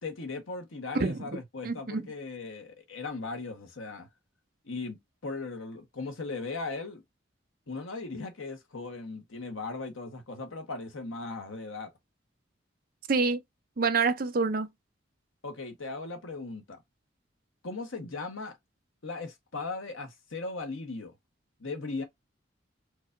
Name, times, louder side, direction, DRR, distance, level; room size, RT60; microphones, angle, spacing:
voice 1, 0.0-4.1 4.6-7.0 7.7-11.9 15.4-16.8 17.6-18.6 19.0-21.1 21.6-22.0, left 3 dB, 90° left, 1.1 m, -38 dB
voice 2, 1.0-1.4 1.6-2.0 13.1-13.4 13.8-14.7, right 4 dB, 45° right, 0.6 m, -27 dB
4.7 x 2.4 x 2.5 m
head